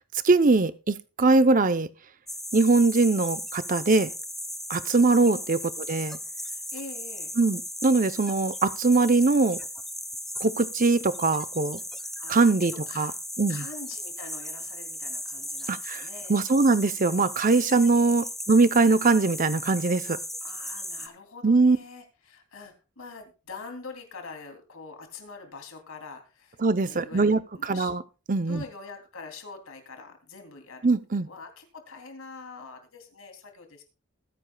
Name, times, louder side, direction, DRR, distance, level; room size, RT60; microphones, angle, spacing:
voice 1, 0.2-1.9 2.5-4.1 4.7-5.6 5.9-6.2 7.4-9.6 10.4-11.8 12.3-13.1 13.4-13.6 15.7-20.2 21.4-21.8 26.6-28.0 28.3-28.6 30.8-31.3, right 3 dB, 35° right, 0.6 m, -22 dB
sound 1, 2.3-21.1, left 1 dB, ahead, 0.9 m, -37 dB
voice 2, 6.4-7.3 12.2-13.1 13.5-16.4 17.8-18.2 20.4-26.6 26.8-27.9 28.5-31.0 31.2-33.8, left 4 dB, 70° left, 3.0 m, -44 dB
20.5 x 9.8 x 2.3 m
head